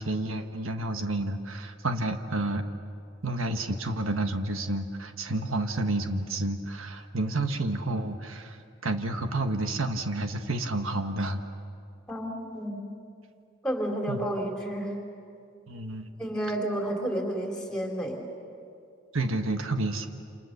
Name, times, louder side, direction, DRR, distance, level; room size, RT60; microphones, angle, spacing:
voice 1, 0.0-2.6 3.2-11.4 14.1-14.2 15.7-16.1 19.1-20.1, right 2 dB, 80° right, 6 dB, 1.4 m, -30 dB
voice 2, 12.1-12.8 13.6-15.0 16.2-18.2, right 1 dB, 5° left, 1 dB, 3.7 m, -31 dB
28.5 x 28.0 x 6.7 m, 2.4 s
head